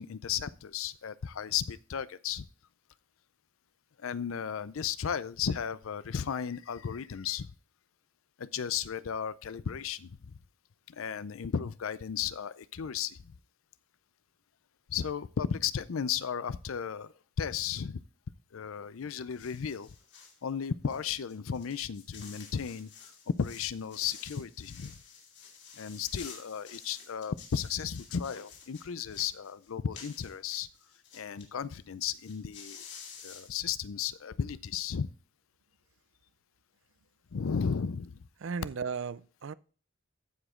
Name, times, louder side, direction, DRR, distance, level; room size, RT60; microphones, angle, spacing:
voice 1, 0.0-2.5 4.0-7.5 8.4-10.4 10.9-13.3 14.9-17.1 17.4-18.0 18.5-19.9 20.4-22.9 23.4-25.0 25.8-30.7 31.1-32.8 33.2-35.1 37.3-38.2, left 7 dB, 80° left, 0.5 m, -34 dB
sound 1, 19.3-20.4 20.9-31.5 31.7-31.8 32.0-33.5, left 6 dB, 55° left, 2.6 m, -50 dB
voice 2, 38.4-39.5, right 5 dB, 65° right, 0.4 m, -35 dB
14.5 x 5.0 x 3.7 m
head